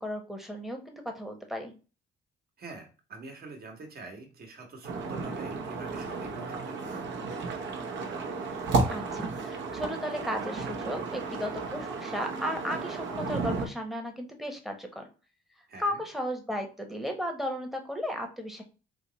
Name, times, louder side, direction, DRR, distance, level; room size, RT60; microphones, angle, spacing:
voice 1, 0.0-1.7 8.9-15.1 15.8-18.6, equal, ahead, 3 dB, 0.8 m, -35 dB
voice 2, 2.6-7.1 7.4-7.6 15.7-16.0, right 3 dB, 50° right, 3 dB, 1.2 m, -45 dB
sound 1, 4.8-13.7, right 3 dB, 70° right, 0.8 m, -33 dB
3.4 x 2.0 x 3.9 m, 0.33 s
cardioid pair, 90°, 20 cm